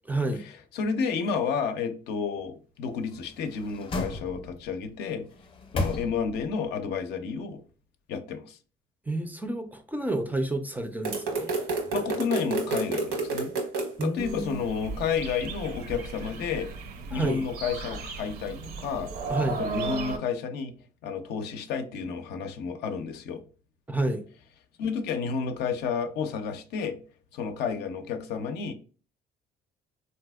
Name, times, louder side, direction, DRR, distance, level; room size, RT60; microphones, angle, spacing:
voice 1, 0.1-0.4 9.1-11.5 14.0-14.6 17.1-17.4 19.3-19.6 23.9-24.2, right 2 dB, 10° right, 0.4 m, -29 dB
voice 2, 0.7-5.3 5.7-7.6 8.1-8.6 11.5-11.6 11.9-13.5 14.0-16.7 17.1-19.1 19.6-20.7 21.0-23.4 24.8-27.0 27.3-28.7, left 6 dB, 75° left, 0.5 m, -31 dB
sound 1, 3.0-4.7 5.3-6.6 6.9-7.0, left 3 dB, 35° left, 0.6 m, -34 dB
sound 2, 11.0-14.1, right 3 dB, 85° right, 1.0 m, -29 dB
sound 3, 14.2-20.2, right 4 dB, 65° right, 0.6 m, -36 dB
3.4 x 2.7 x 2.2 m
cardioid pair, 110°, 17 cm